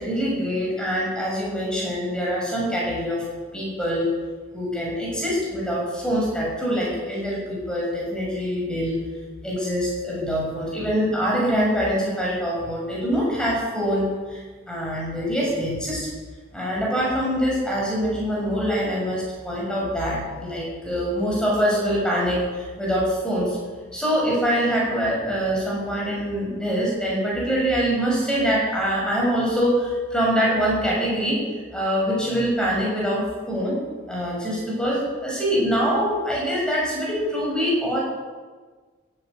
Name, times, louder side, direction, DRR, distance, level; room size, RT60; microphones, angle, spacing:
voice 1, 0.0-3.2 3.5-4.1 4.5-9.0 9.4-16.1 16.5-23.6 23.9-31.4 31.7-33.8 34.1-38.0, equal, 5° left, -4 dB, 6.6 m, -24 dB
16.5 x 10.0 x 8.3 m, 1.4 s
head